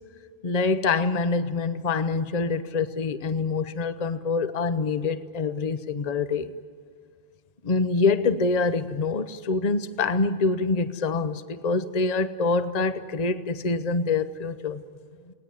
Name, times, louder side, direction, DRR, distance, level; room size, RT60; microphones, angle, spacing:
voice 1, 0.4-6.5 7.6-14.8, left 4 dB, 45° left, 0.9 m, -25 dB
29.0 x 19.0 x 9.8 m
omnidirectional pair, 1.0 m